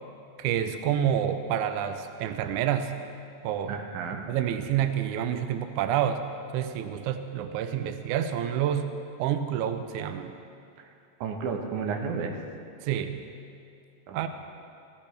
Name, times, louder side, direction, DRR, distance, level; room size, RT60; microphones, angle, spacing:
voice 1, 0.4-3.0 3.4-3.8 4.3-6.3 6.5-8.9 9.2-10.4 12.8-13.2 14.1-14.3, right 9 dB, 90° right, 8 dB, 1.7 m, -28 dB
voice 2, 3.7-4.2 11.2-12.4 14.1-14.3, right 5 dB, 70° right, 2 dB, 2.2 m, -32 dB
15.5 x 15.0 x 3.3 m, 2.6 s
omnidirectional pair, 4.1 m